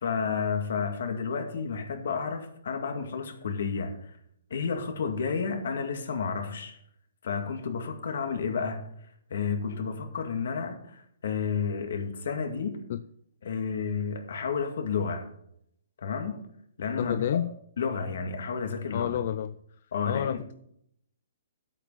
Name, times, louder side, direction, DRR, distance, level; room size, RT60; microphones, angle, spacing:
voice 1, 0.0-4.1 4.5-6.8 7.2-8.8 9.3-12.8 13.4-15.3 16.0-16.4 16.8-17.3 17.8-19.2 19.9-20.4, left 5 dB, 65° left, 6 dB, 2.0 m, -31 dB
voice 2, 17.0-17.5 18.9-19.6 20.1-20.5, left 10 dB, 45° left, 13 dB, 0.4 m, -30 dB
11.0 x 8.5 x 5.6 m, 0.73 s
hypercardioid pair, 170°, 0 cm